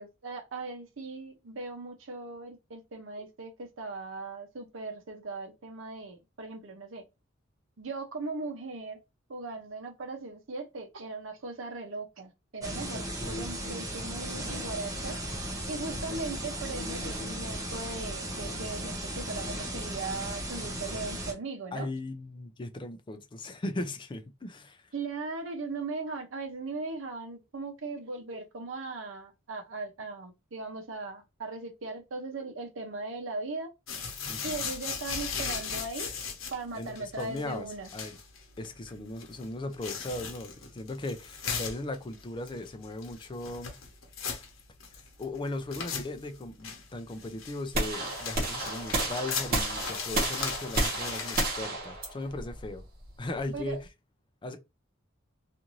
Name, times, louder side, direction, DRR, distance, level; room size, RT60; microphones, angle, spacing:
voice 1, 0.0-7.0 7.8-9.0 9.3-15.2 15.7-21.9 24.9-33.7 34.4-36.1 36.5-37.9 53.5-53.8, right 3 dB, 70° right, 0.7 m, -38 dB
sound 1, 12.6-21.3, right 1 dB, 20° right, 0.7 m, -36 dB
voice 2, 12.9-13.5 15.9-16.2 21.7-24.9 34.3-34.6 36.7-37.7 37.9-38.2 38.6-43.7 44.9-52.8 53.2-53.8 54.4-54.6, left 2 dB, 25° left, 0.4 m, -38 dB
sound 2, 33.9-51.5, left 6 dB, 85° left, 0.8 m, -38 dB
sound 3, 47.7-53.8, right 2 dB, 50° right, 1.1 m, -32 dB
2.6 x 2.5 x 3.0 m
head